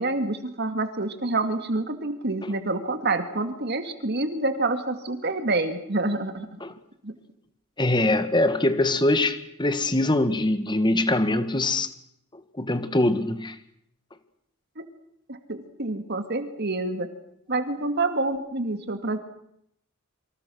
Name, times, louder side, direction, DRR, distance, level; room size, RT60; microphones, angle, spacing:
voice 1, 0.0-6.6 7.0-7.2 14.8-14.9 15.3-17.1 17.5-19.2, right 2 dB, 50° right, 9 dB, 2.3 m, -27 dB
voice 2, 7.8-11.9 12.5-13.6, left 1 dB, 20° left, 11 dB, 1.8 m, -23 dB
27.5 x 25.5 x 6.4 m, 0.72 s
head